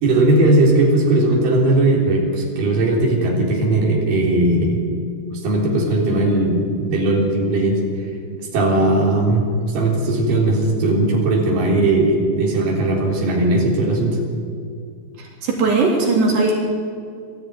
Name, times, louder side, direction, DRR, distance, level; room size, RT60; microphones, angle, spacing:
voice 1, 0.0-4.8 5.3-7.8 8.5-14.2, right 2 dB, 55° right, -3 dB, 5.2 m, -18 dB
voice 2, 15.2-16.6, right 3 dB, 80° right, -3 dB, 5.7 m, -18 dB
23.5 x 14.0 x 9.5 m, 2.3 s
omnidirectional pair, 4.8 m